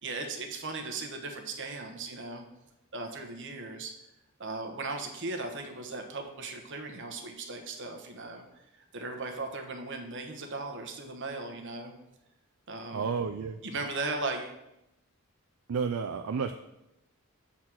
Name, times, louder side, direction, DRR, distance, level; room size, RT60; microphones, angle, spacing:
voice 1, 0.0-2.4 2.9-3.9 4.4-8.4 8.9-11.9 12.7-13.1 13.6-14.6, right 3 dB, 55° right, 4 dB, 1.1 m, -37 dB
voice 2, 12.9-13.6 15.7-16.5, right 5 dB, 75° right, 7 dB, 0.4 m, -31 dB
7.3 x 4.2 x 6.2 m, 0.88 s
head